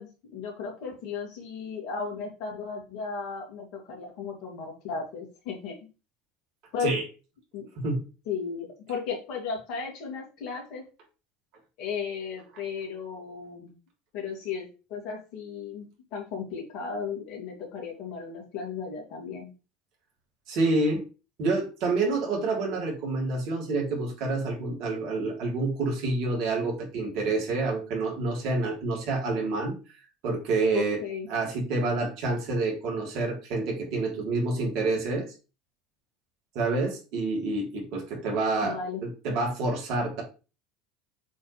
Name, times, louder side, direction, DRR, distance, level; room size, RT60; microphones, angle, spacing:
voice 1, 0.0-5.8 6.7-6.9 7.5-7.7 8.3-10.8 11.8-13.7 14.1-19.5 30.7-31.3 38.6-39.0, left 5 dB, 65° left, 1 dB, 2.8 m, -35 dB
voice 2, 20.5-21.0 21.4-29.7 30.2-31.0 31.3-35.3 36.5-40.2, right 3 dB, 65° right, 0 dB, 3.4 m, -28 dB
7.2 x 4.6 x 3.4 m, 0.32 s
hypercardioid pair, 85°, 0 cm